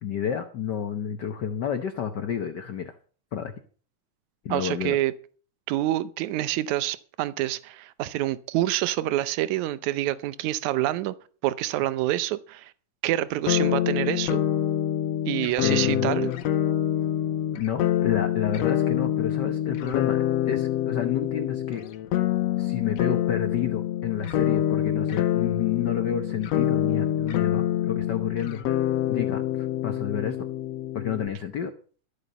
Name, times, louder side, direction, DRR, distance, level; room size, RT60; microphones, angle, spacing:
voice 1, 0.0-2.9 3.3-3.5 4.4-5.0 15.6-16.1 17.6-21.8 22.6-28.6 29.1-30.4 30.9-31.7, left 8 dB, 90° left, 0.9 m, -30 dB
voice 2, 4.5-5.1 5.7-11.1 11.4-12.7 13.0-14.4 15.3-16.3, right 15 dB, 80° right, 2.1 m, -27 dB
sound 1, 13.5-31.3, left 12 dB, 70° left, 1.9 m, -26 dB
13.0 x 8.3 x 6.7 m
omnidirectional pair, 3.3 m